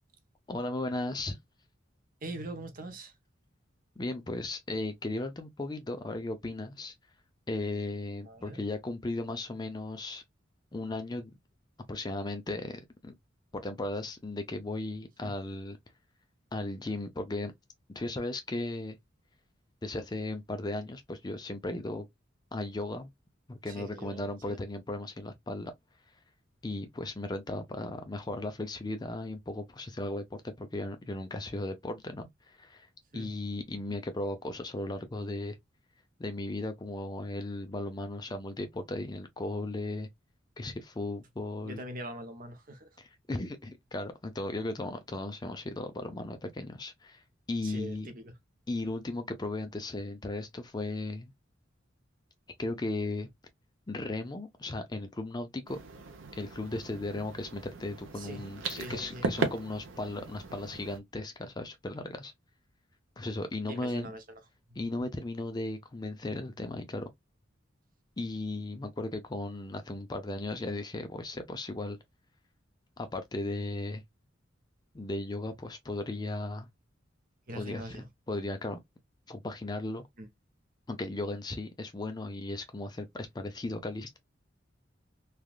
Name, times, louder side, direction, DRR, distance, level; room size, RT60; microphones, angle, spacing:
voice 1, 0.5-1.4 4.0-6.9 7.5-10.2 10.7-11.3 11.9-13.1 13.5-15.8 16.5-17.5 17.9-19.0 19.8-22.1 22.5-23.1 23.5-25.7 26.6-32.9 33.1-35.6 36.2-40.1 40.6-41.8 43.0-48.1 48.7-51.3 52.6-53.3 53.9-55.8 56.3-62.3 63.2-64.1 64.8-67.1 68.2-72.0 73.0-74.0 74.9-76.7 77.5-78.0 78.3-78.8 79.3-80.0 80.9-84.2, left 2 dB, 20° left, 0.4 m, -36 dB
voice 2, 2.2-3.1 8.2-8.6 15.2-15.3 23.6-24.6 33.1-33.3 41.6-42.9 47.6-48.3 58.2-59.3 63.7-64.2 64.7-65.1 77.5-78.1 80.2-80.3, right 1 dB, 45° right, 0.7 m, -43 dB
sound 1, 55.7-61.0, right 3 dB, 85° right, 0.7 m, -38 dB
3.3 x 2.3 x 2.3 m
head